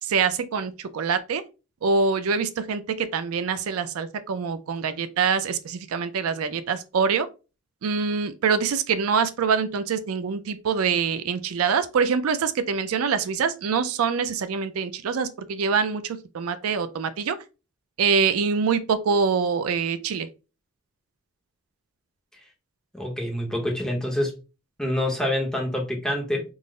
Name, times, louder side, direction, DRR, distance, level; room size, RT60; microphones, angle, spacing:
voice 1, 0.0-1.4 1.8-7.3 7.8-17.4 18.0-20.3, right 5 dB, 85° right, 0.4 m, -25 dB
voice 2, 22.9-24.4 24.8-26.4, left 1 dB, 5° left, 0.8 m, -26 dB
3.8 x 2.0 x 3.7 m
head